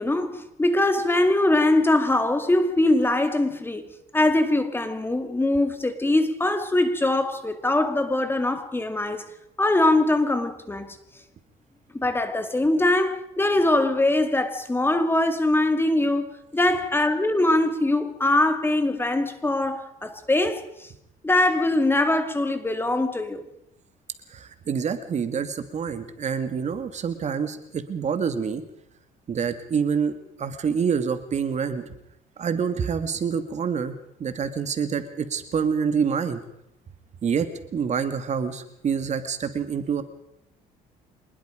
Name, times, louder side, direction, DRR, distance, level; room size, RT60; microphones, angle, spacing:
voice 1, 0.0-3.9 4.1-9.3 9.6-11.0 11.9-20.7 21.2-23.4, left 2 dB, 15° left, 2.3 m, -22 dB
voice 2, 24.3-28.6 29.3-30.1 30.4-31.8 32.4-36.4 37.2-40.0, right 6 dB, 45° right, 2.1 m, -27 dB
25.5 x 20.5 x 5.1 m
cardioid pair, 110°, 17 cm